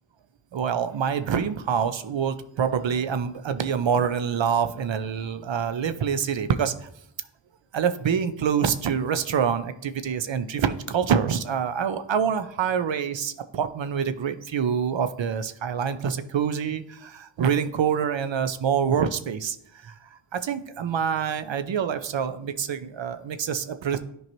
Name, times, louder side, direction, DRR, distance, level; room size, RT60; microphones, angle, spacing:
voice 1, 0.5-6.7 7.7-19.6 19.8-19.9 20.3-24.0, right 7 dB, 65° right, 11 dB, 0.6 m, -26 dB
10.5 x 4.6 x 3.0 m, 0.71 s
wide cardioid pair, 65°, 48 cm